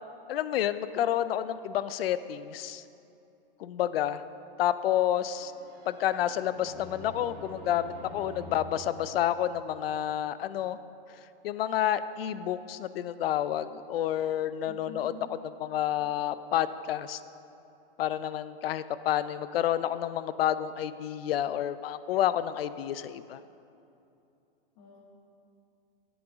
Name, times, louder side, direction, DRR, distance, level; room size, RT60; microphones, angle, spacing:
voice 1, 0.3-2.8 3.6-4.2 4.6-5.5 5.9-10.8 11.4-15.1 15.4-17.2 18.0-23.4, left 11 dB, 80° left, 14 dB, 0.5 m, -29 dB
sound 1, 5.2-9.9, equal, 75° right, 2.2 m, -47 dB
voice 2, 14.6-15.2 24.8-25.0, left 5 dB, 55° left, -4 dB, 2.1 m, -47 dB
10.0 x 8.0 x 3.6 m, 2.7 s
hypercardioid pair, 140°, 29 cm